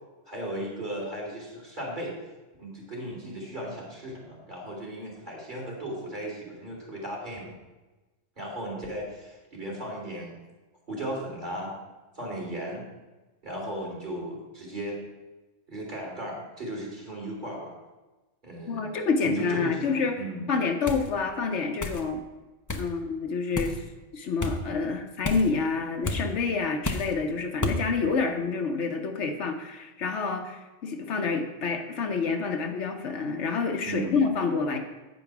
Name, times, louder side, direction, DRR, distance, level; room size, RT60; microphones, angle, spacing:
voice 1, 0.3-2.1 2.6-7.5 8.4-10.3 10.9-11.7 12.1-12.8 13.4-15.0 15.7-17.8 18.4-18.9 19.2-20.5 33.8-34.2, right 1 dB, 40° right, -3 dB, 2.8 m, -36 dB
voice 2, 18.7-20.1 20.5-22.2 22.7-23.8 24.1-34.8, left 4 dB, 70° left, 5 dB, 1.1 m, -28 dB
sound 1, 20.9-21.1 21.8-22.0 22.7-22.9 23.5-23.8 24.4-24.6 25.2-25.5 26.0-26.2 26.8-27.1 27.6-27.8, left 2 dB, 20° left, 0.5 m, -30 dB
8.7 x 5.3 x 5.9 m, 1.1 s
omnidirectional pair, 1.2 m